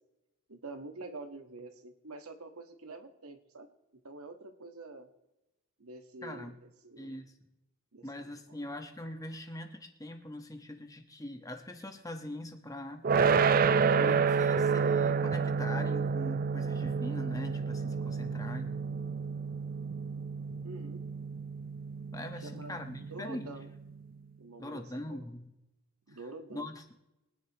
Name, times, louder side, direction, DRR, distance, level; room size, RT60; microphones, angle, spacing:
voice 1, 0.5-3.7 4.0-5.1 5.8-7.2 7.9-8.0 20.6-21.0 22.4-23.7 24.4-25.2 26.1-26.7, right 2 dB, 80° right, 6 dB, 1.5 m, -47 dB
voice 2, 6.2-6.6 7.0-7.3 8.0-13.0 14.0-18.8 22.1-23.6 24.6-25.5 26.1-26.2 26.5-26.8, left 1 dB, 15° left, 5 dB, 1.2 m, -42 dB
sound 1, 13.0-24.0, right 5 dB, 40° right, 0.4 m, -30 dB
23.5 x 10.5 x 3.0 m, 0.96 s
head